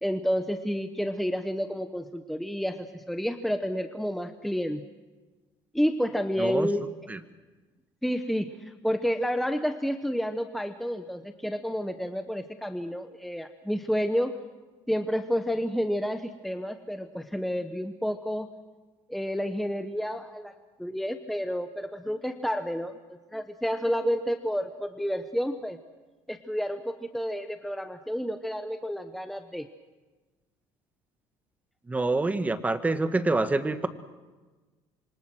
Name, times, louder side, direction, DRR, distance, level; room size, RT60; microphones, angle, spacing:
voice 1, 0.0-4.8 5.7-6.9 8.0-14.4 14.9-18.5 19.1-20.5 20.8-25.8 26.3-29.7, equal, ahead, 8 dB, 1.0 m, -30 dB
voice 2, 31.9-33.9, right 2 dB, 15° right, 10 dB, 1.6 m, -26 dB
27.0 x 25.0 x 6.2 m, 1.3 s
cardioid pair, 125°, 11 cm